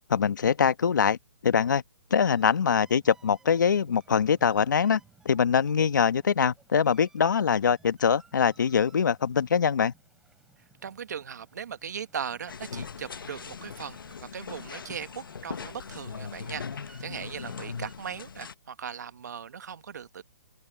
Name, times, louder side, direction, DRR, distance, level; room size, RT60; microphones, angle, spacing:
voice 1, 0.1-1.2 1.4-1.8 2.1-5.0 5.2-9.9, left 7 dB, 60° left, 1.4 m, -23 dB
sound 1, 2.1-17.9, right 4 dB, 5° right, 6.6 m, -61 dB
voice 2, 10.8-20.2, right 7 dB, 50° right, 1.4 m, -39 dB
sound 2, 12.5-18.5, left 6 dB, 80° left, 1.4 m, -40 dB
open air
hypercardioid pair, 175°, 11 cm